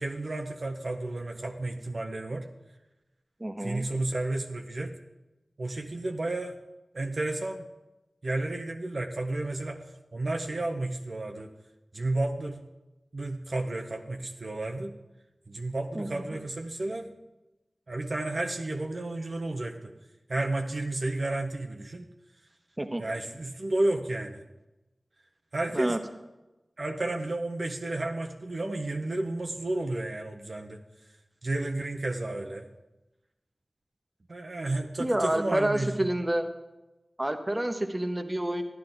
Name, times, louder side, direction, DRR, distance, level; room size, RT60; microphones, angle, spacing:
voice 1, 0.0-2.5 3.6-4.9 5.6-6.5 6.9-7.7 8.2-9.8 10.1-11.5 11.9-12.6 13.1-14.9 15.5-17.1 17.9-19.9 20.3-22.0 23.0-24.4 25.5-26.0 26.8-30.8 31.4-32.7 34.3-36.1, right 2 dB, 65° right, 3 dB, 0.9 m, -32 dB
voice 2, 3.4-3.8 15.9-16.2 22.8-23.0 25.7-26.0 35.0-36.5 37.2-38.6, right 1 dB, 25° right, 6 dB, 1.0 m, -28 dB
12.5 x 10.5 x 3.9 m, 1.0 s
cardioid pair, 45°, 0 cm